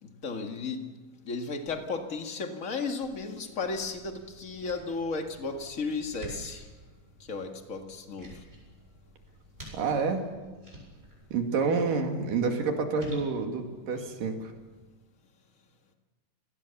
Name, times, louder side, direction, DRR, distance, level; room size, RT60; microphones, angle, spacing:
voice 1, 0.0-0.8 1.2-6.7 7.3-8.3, left 4 dB, 30° left, 4 dB, 1.8 m, -34 dB
sound 1, 3.6-14.8, equal, 15° right, 8.1 m, -49 dB
voice 2, 9.7-10.2 11.3-14.5, right 4 dB, 75° right, 4 dB, 3.9 m, -28 dB
29.0 x 18.5 x 7.1 m, 1.3 s
omnidirectional pair, 3.8 m